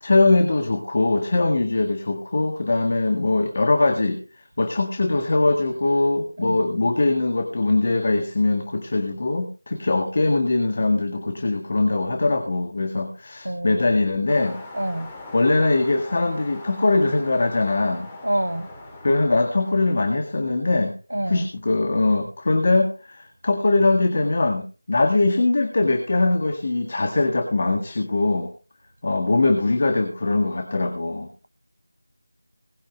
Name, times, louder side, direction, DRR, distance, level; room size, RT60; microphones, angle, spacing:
voice 1, 0.0-4.2 4.6-14.6 15.3-18.1 19.0-20.9 21.3-28.5 29.0-31.3, left 2 dB, 40° left, 1.9 m, -21 dB
voice 2, 13.4-13.8 14.7-15.1 18.2-18.7 21.1-21.4, right 1 dB, 85° right, 1.2 m, -26 dB
sound 1, 14.3-20.4, left 2 dB, 10° left, 2.6 m, -42 dB
19.5 x 10.5 x 3.4 m
figure-of-eight pair, 170°, 0 cm